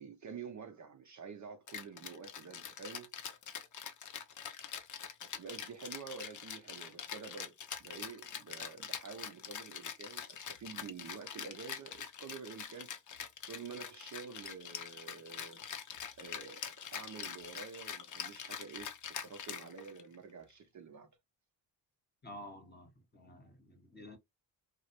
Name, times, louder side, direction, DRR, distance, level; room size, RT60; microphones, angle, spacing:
voice 1, 0.0-3.1 5.2-7.5 7.8-12.9 13.5-15.7 16.2-21.1, right 5 dB, 40° right, 0.6 m, -48 dB
Rattle (instrument), 1.7-20.1, left 8 dB, 40° left, 0.6 m, -44 dB
voice 2, 22.2-24.2, left 1 dB, 20° left, 1.0 m, -51 dB
2.4 x 2.0 x 2.8 m
supercardioid pair, 55°, 46 cm